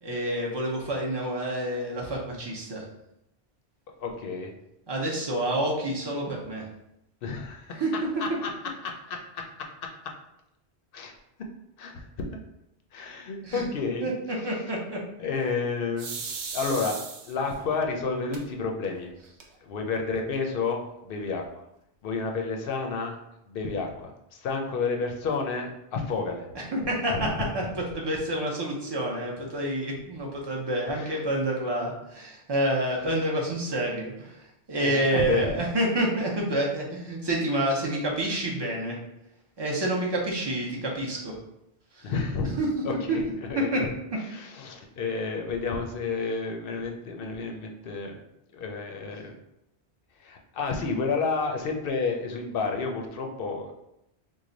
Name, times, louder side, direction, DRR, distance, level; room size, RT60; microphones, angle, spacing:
voice 1, 0.0-2.8 4.9-6.6 7.7-7.9 13.4-13.6 14.0-15.0 26.7-34.4 34.7-39.0 39.6-41.3 41.9-42.1 42.6-43.2 43.5-43.8, right 1 dB, 30° right, -2 dB, 0.6 m, -28 dB
voice 2, 4.0-4.5 7.2-7.8 8.2-8.5 8.8-9.5 10.9-11.1 11.8-12.3 12.9-14.1 15.2-16.1 16.5-19.1 19.6-21.4 22.0-23.2 23.5-26.5 27.1-27.3 31.0-31.1 34.8-35.5 42.0-42.5 42.8-43.2 43.5-43.9 44.3-48.1 48.5-49.3 50.2-53.7, left 4 dB, 65° left, 2 dB, 0.7 m, -30 dB
sound 1, 16.0-17.5 18.3-18.4 18.8-18.9 19.2-19.8, right 5 dB, 90° right, 0.9 m, -36 dB
3.1 x 2.2 x 3.8 m, 0.82 s
omnidirectional pair, 1.1 m